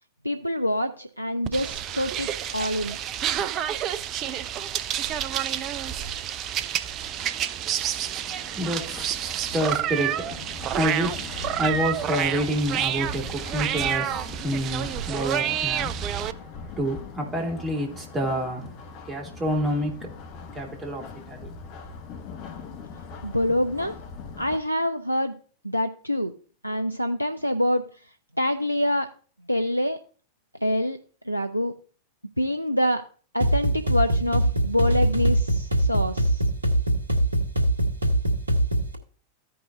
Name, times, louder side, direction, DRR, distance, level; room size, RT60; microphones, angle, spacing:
voice 1, 0.2-3.0 23.2-24.0 24.4-25.3 25.6-26.3 26.6-27.8 28.4-29.1 29.5-30.0 30.6-31.0 31.3-31.7 32.4-33.0 33.3-36.4, left 1 dB, 90° left, 0.4 m, -26 dB
sound 1, 1.5-16.3, right 10 dB, 35° right, 0.5 m, -29 dB
voice 2, 6.6-18.7 19.0-20.1 20.5-21.5, equal, 15° right, 2.6 m, -29 dB
sound 2, 7.9-24.6, left 4 dB, 40° left, 1.0 m, -41 dB
sound 3, 33.4-39.0, right 1 dB, 80° right, 1.5 m, -23 dB
15.0 x 5.4 x 2.6 m
figure-of-eight pair, 90°, 0 cm